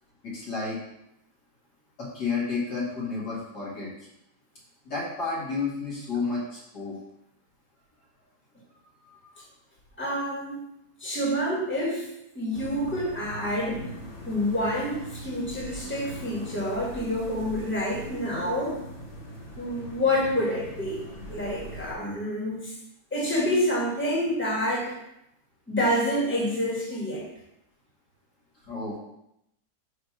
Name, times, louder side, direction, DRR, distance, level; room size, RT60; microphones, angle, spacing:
voice 1, 0.2-0.8 2.0-4.1 4.8-6.9 9.0-9.4 28.7-29.0, left 4 dB, 70° left, -7 dB, 2.9 m, -31 dB
voice 2, 10.0-10.6 11.0-12.1 12.3-13.9 14.3-18.8 19.6-22.7 23.1-24.9 25.7-27.3, left 1 dB, 5° left, -5 dB, 2.1 m, -28 dB
sound 1, 12.5-21.9, equal, 45° left, 1.8 m, -41 dB
6.6 x 3.3 x 6.0 m, 0.81 s
omnidirectional pair, 1.8 m